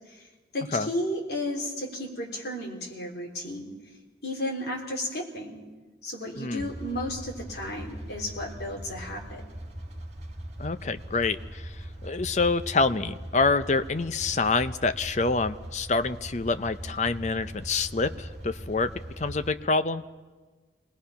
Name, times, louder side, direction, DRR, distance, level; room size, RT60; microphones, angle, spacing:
voice 1, 0.5-3.7 4.2-5.6 6.0-9.4, left 1 dB, 65° left, -1 dB, 3.7 m, -33 dB
voice 2, 6.4-6.7 10.6-11.7 12.0-20.0, left 3 dB, 40° left, 11 dB, 0.6 m, -27 dB
sound 1, 6.6-19.5, right 1 dB, 35° right, 2.0 m, -41 dB
26.5 x 19.5 x 5.7 m, 1.3 s
head